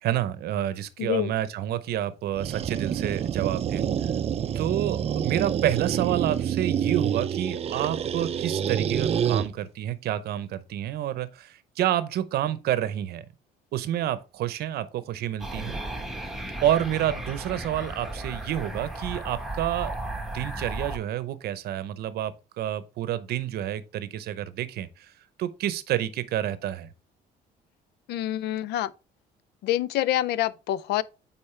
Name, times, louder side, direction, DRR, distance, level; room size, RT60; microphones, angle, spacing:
voice 1, 0.0-3.8 4.5-13.2 13.7-15.8 16.6-25.1 25.4-26.9, right 12 dB, 70° right, 0.7 m, -29 dB
voice 2, 1.0-1.3 28.1-28.9 29.6-31.0, left 13 dB, 75° left, 0.5 m, -26 dB
sound 1, 2.4-9.5, right 8 dB, 35° right, 0.5 m, -27 dB
sound 2, 15.4-21.0, right 1 dB, ahead, 1.4 m, -35 dB
8.8 x 4.4 x 3.2 m
cardioid pair, 110°, 17 cm